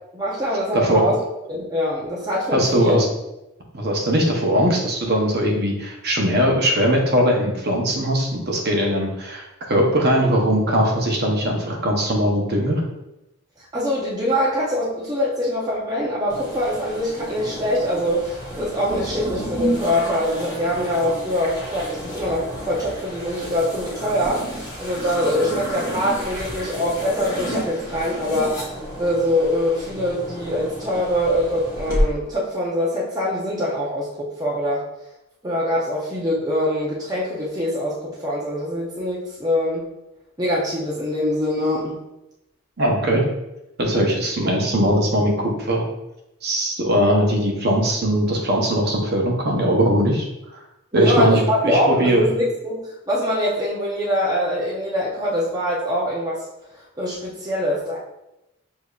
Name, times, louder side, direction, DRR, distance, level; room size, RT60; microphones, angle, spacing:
voice 1, 0.1-1.2 1.5-3.0 13.7-28.6 29.0-34.8 35.4-39.9 40.4-42.0 50.9-56.4 57.0-58.0, equal, 15° right, -5 dB, 0.6 m, -23 dB
voice 2, 0.7-1.0 2.5-3.1 3.7-12.8 42.8-43.3 43.8-45.8 46.4-50.3 50.9-52.2, equal, 45° right, 0 dB, 0.8 m, -20 dB
sound 1, 16.3-32.0, equal, 15° left, 0.9 m, -31 dB
6.5 x 2.7 x 2.4 m, 0.90 s
head